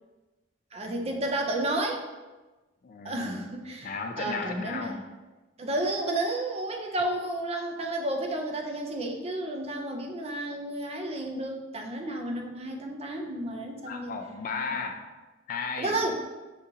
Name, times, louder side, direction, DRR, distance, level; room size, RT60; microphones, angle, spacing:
voice 1, 0.7-2.0 3.0-5.0 5.6-14.1 15.8-16.2, right 1 dB, 30° right, 2 dB, 0.5 m, -31 dB
voice 2, 2.8-3.5 3.8-5.0 13.9-15.0 15.5-16.0, left 4 dB, 45° left, 5 dB, 0.3 m, -35 dB
6.7 x 2.4 x 2.7 m, 1.2 s
head